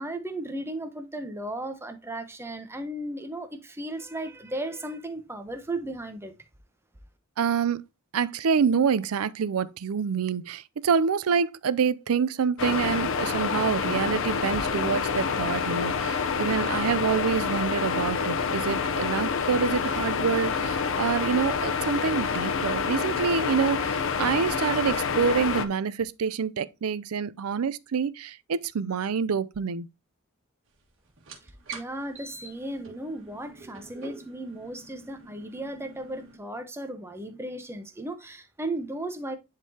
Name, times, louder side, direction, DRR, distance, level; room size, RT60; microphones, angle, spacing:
voice 1, 0.0-6.3 31.7-39.4, right 1 dB, 10° right, 0.8 m, -35 dB
voice 2, 7.4-7.8 8.1-29.9, right 6 dB, 85° right, 0.5 m, -27 dB
sound 1, 12.6-25.7, left 5 dB, 65° left, 0.7 m, -27 dB
sound 2, 31.2-36.4, right 3 dB, 60° right, 1.7 m, -45 dB
10.5 x 3.7 x 2.8 m
head